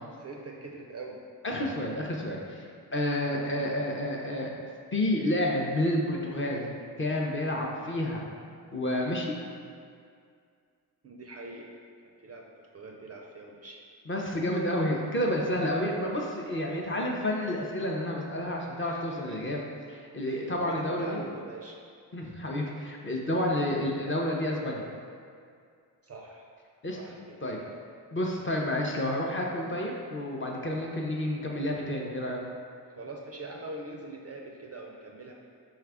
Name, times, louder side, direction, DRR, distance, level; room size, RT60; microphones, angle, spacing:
voice 1, 0.2-1.2 3.2-3.5 11.0-11.7 12.2-13.8 18.8-19.7 20.2-21.8 26.0-26.5 26.9-27.8 29.6-29.8 32.9-35.3, right 2 dB, 35° right, 0 dB, 0.4 m, -43 dB
voice 2, 1.4-2.6 2.9-4.5 4.9-6.6 7.0-8.2 8.7-9.3 14.1-19.6 20.1-21.2 22.1-24.8 26.8-27.0 27.4-27.6 28.1-32.4, left 1 dB, 30° left, -1 dB, 0.5 m, -30 dB
4.2 x 2.4 x 3.4 m, 2.2 s
cardioid pair, 60°, 46 cm